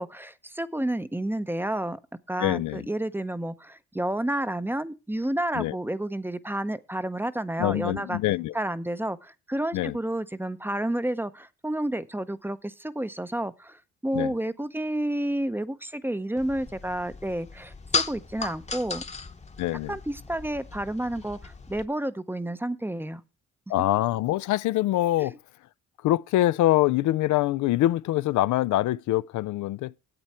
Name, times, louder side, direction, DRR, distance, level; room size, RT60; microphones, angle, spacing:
voice 1, 0.0-2.0 2.3-8.2 8.5-19.0 19.9-23.2 25.2-25.3, right 1 dB, 5° right, 0.7 m, -30 dB
voice 2, 2.4-2.9 5.5-5.8 7.6-8.5 9.7-10.0 14.1-14.3 19.6-20.0 23.7-25.4 26.0-29.9, left 15 dB, 75° left, 0.5 m, -24 dB
sound 1, 16.4-21.9, left 4 dB, 20° left, 1.0 m, -35 dB
10.5 x 8.1 x 4.3 m
cardioid pair, 90°, 30 cm